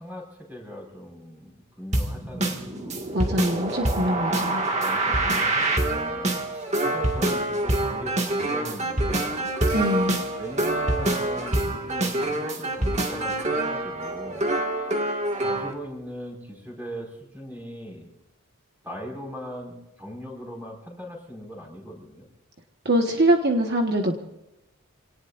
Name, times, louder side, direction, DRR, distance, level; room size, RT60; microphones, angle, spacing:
voice 1, 0.0-2.9 4.8-9.4 10.4-14.5 15.4-18.1 18.8-22.2, equal, 10° right, 0 dB, 5.4 m, -40 dB
sound 1, 1.9-15.7, right 1 dB, 30° right, 2.0 m, -26 dB
voice 2, 3.1-4.6 9.7-10.2 22.8-24.1, right 1 dB, 50° right, 3 dB, 1.4 m, -23 dB
sound 2, 9.7-16.1, equal, 90° right, 3.1 m, -46 dB
28.5 x 19.0 x 2.6 m, 0.92 s
head